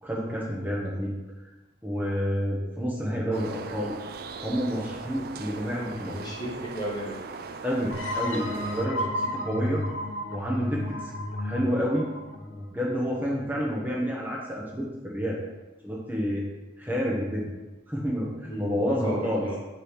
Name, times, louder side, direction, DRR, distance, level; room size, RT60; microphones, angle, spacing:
voice 1, 0.0-1.1 1.8-3.9 4.4-6.1 7.6-9.8 10.3-11.1 11.4-12.1 12.5-15.4 15.8-16.5 16.8-17.5 17.9-19.5, equal, 10° right, -5 dB, 0.9 m, -29 dB
sound 1, 3.3-8.9, right 4 dB, 50° right, 0.3 m, -40 dB
voice 2, 6.0-7.2 18.5-19.6, right 1 dB, 20° left, -2 dB, 1.1 m, -34 dB
sound 2, 7.9-13.4, left 1 dB, 75° left, 0.8 m, -32 dB
6.8 x 3.1 x 5.6 m, 1.1 s
head